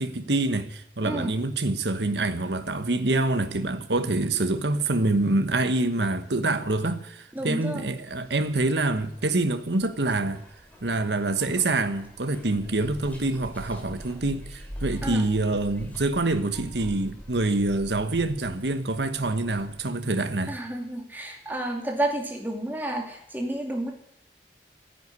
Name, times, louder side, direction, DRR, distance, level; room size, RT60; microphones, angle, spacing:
voice 1, 0.0-10.4 10.8-20.6, right 2 dB, 80° right, 1.3 m, -26 dB
voice 2, 1.0-1.4 7.3-7.9 15.0-15.3 20.5-23.9, right 1 dB, 10° right, 2.5 m, -31 dB
Zipper (clothing), 8.1-19.8, equal, 10° left, 3.3 m, -43 dB
14.0 x 10.5 x 9.7 m
head